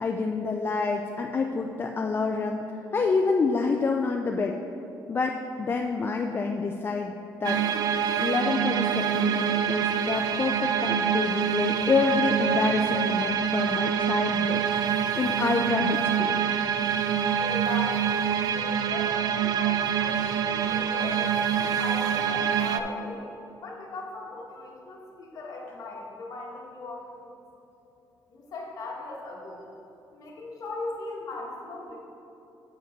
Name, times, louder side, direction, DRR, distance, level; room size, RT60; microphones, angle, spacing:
voice 1, 0.0-2.6 2.9-4.6 5.1-7.1 7.4-7.6 8.2-16.3, left 4 dB, 30° left, 3 dB, 0.3 m, -27 dB
sound 1, 7.4-22.8, right 8 dB, 55° right, 0.4 m, -26 dB
voice 2, 17.4-27.3 28.3-29.6 30.1-32.0, left 2 dB, 50° left, -2 dB, 1.6 m, -38 dB
7.5 x 5.1 x 5.1 m, 2.9 s
cardioid pair, 130°, 8 cm